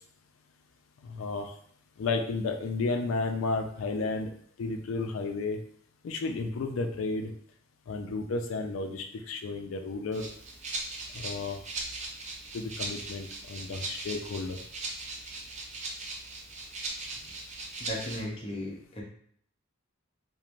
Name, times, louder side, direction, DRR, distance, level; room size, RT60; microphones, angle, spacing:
voice 1, 1.0-1.5 2.0-4.3 4.6-5.6 6.0-7.3 7.9-10.3 11.1-11.6 12.5-14.6, left 3 dB, 75° left, 5 dB, 0.4 m, -32 dB
Rattle (instrument), 10.1-18.2, right 2 dB, 35° right, 0.5 m, -39 dB
voice 2, 17.8-19.0, equal, 30° left, -3 dB, 0.6 m, -36 dB
3.0 x 2.1 x 2.5 m, 0.62 s
head